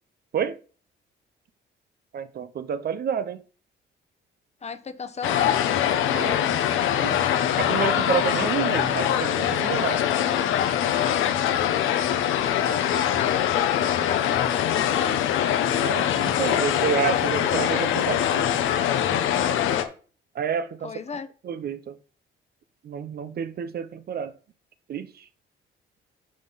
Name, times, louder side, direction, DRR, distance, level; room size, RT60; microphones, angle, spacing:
voice 1, 2.1-3.4 6.1-6.6 7.0-7.2 7.6-10.0 15.8-18.4 20.4-20.9 21.4-21.9 22.8-24.3 24.9-25.1, right 8 dB, 50° right, 0.6 m, -29 dB
voice 2, 4.6-5.6 12.3-12.8 13.1-15.2 20.8-21.3, left 5 dB, 35° left, 0.9 m, -35 dB
sound 1, 5.2-19.8, left 10 dB, 85° left, 0.9 m, -23 dB
11.0 x 3.8 x 4.0 m
cardioid pair, 90°, 20 cm